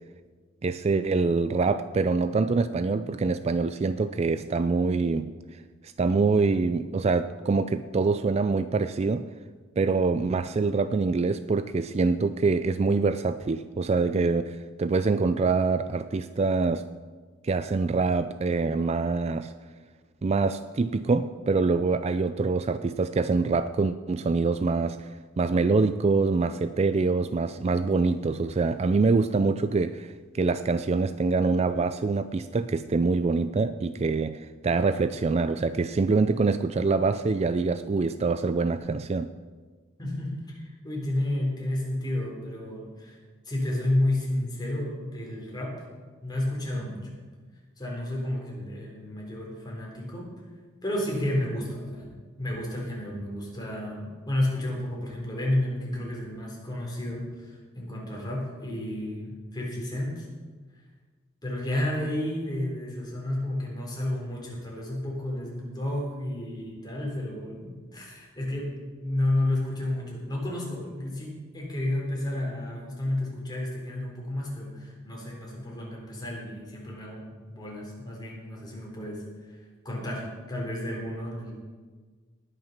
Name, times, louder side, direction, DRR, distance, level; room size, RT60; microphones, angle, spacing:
voice 1, 0.6-5.3 5.8-9.3 9.8-16.8 17.4-19.5 20.2-25.1 25.4-39.3, right 4 dB, 30° right, 12 dB, 0.3 m, -25 dB
voice 2, 40.0-43.2 43.5-45.8 46.2-47.1 47.8-50.3 50.8-52.1 52.4-60.3 61.4-79.2 79.8-81.5, left 1 dB, 20° left, -2 dB, 3.7 m, -31 dB
19.0 x 6.8 x 5.8 m, 1.5 s
head